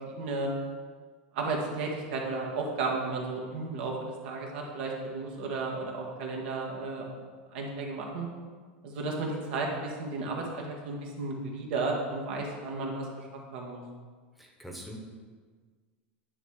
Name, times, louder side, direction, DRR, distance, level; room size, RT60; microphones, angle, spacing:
voice 1, 0.1-0.5 1.3-7.1 7.5-8.3 8.8-13.1 13.3-13.8, right 3 dB, 75° right, -1 dB, 1.6 m, -33 dB
voice 2, 14.3-15.0, equal, ahead, 0 dB, 1.1 m, -43 dB
9.5 x 3.2 x 5.6 m, 1.5 s
supercardioid pair, 110°, 6 cm